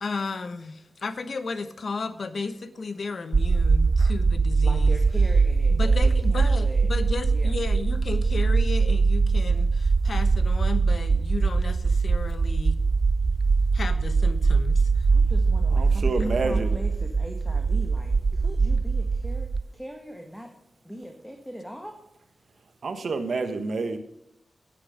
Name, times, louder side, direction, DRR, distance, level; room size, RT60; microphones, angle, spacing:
voice 1, 0.0-5.0 5.7-12.8 13.7-15.1 16.2-16.3, left 4 dB, 65° left, 11 dB, 1.0 m, -34 dB
sound 1, 3.3-19.6, right 4 dB, 60° right, 0.6 m, -22 dB
voice 2, 4.6-6.9 7.3-7.7 15.1-20.5 20.8-22.0, equal, ahead, 3 dB, 1.6 m, -40 dB
voice 3, 15.7-16.7 22.8-24.0, right 3 dB, 75° right, 9 dB, 1.2 m, -28 dB
10.0 x 8.4 x 5.0 m, 0.85 s
cardioid pair, 55°, 0 cm